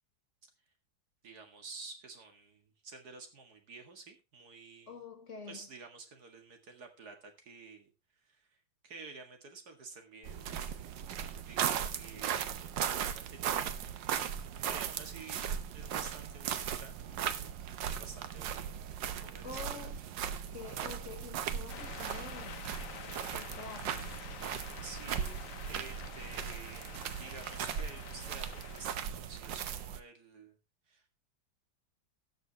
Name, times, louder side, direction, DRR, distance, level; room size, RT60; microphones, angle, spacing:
voice 1, 1.2-5.0 5.5-7.9 8.2-10.8 11.4-13.8 14.2-19.9 24.8-25.3 25.7-30.6 30.9-31.1, right 4 dB, 50° right, 2.3 m, -51 dB
voice 2, 4.9-5.7 19.4-20.1 20.5-22.7 23.3-24.2, left 5 dB, 35° left, 2.6 m, -47 dB
sound 1, 10.2-30.0, right 9 dB, 70° right, 1.5 m, -38 dB
sound 2, 21.7-29.0, left 9 dB, 60° left, 0.9 m, -48 dB
19.0 x 6.5 x 2.9 m
omnidirectional pair, 2.2 m